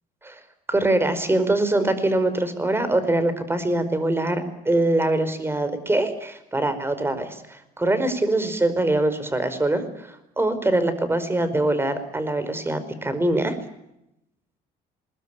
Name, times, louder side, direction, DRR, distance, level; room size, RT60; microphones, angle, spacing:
voice 1, 0.7-13.6, right 2 dB, 15° right, 12 dB, 4.9 m, -23 dB
23.5 x 22.0 x 9.1 m, 0.83 s
cardioid pair, 110°, 17 cm